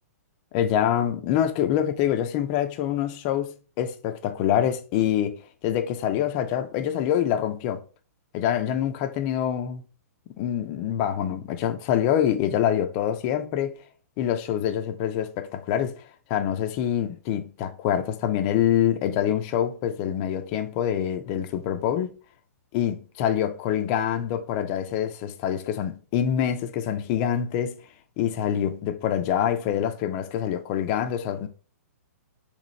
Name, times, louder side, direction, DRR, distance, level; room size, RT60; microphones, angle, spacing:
voice 1, 0.5-5.4 5.6-7.8 8.3-9.8 10.4-13.8 14.2-16.0 16.3-22.1 22.7-27.8 28.2-31.5, left 10 dB, 30° left, 0.6 m, -25 dB
3.2 x 3.1 x 4.0 m
hypercardioid pair, 145°, 9 cm